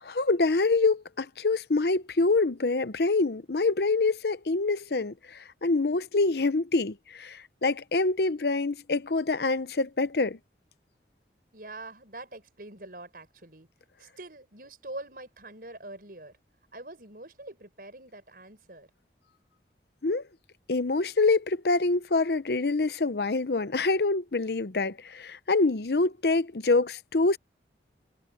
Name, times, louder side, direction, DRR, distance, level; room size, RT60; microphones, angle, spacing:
voice 1, 0.0-10.4 20.0-20.2 20.7-27.4, left 3 dB, 65° left, 0.8 m, -26 dB
voice 2, 11.5-13.7 14.0-16.4 16.7-18.9, right 2 dB, 55° right, 5.9 m, -44 dB
head